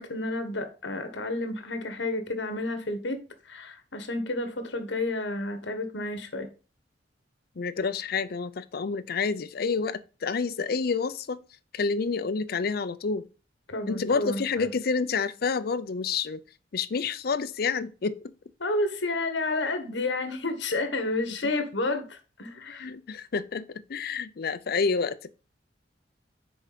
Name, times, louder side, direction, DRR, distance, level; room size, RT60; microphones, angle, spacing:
voice 1, 0.0-3.2 3.5-6.5 13.7-14.7 18.6-22.9, left 2 dB, 75° left, 1.3 m, -30 dB
voice 2, 7.6-11.4 11.7-13.2 13.9-16.4 16.7-18.3 22.6-25.3, left 5 dB, 55° left, 0.5 m, -29 dB
6.4 x 4.4 x 5.0 m
head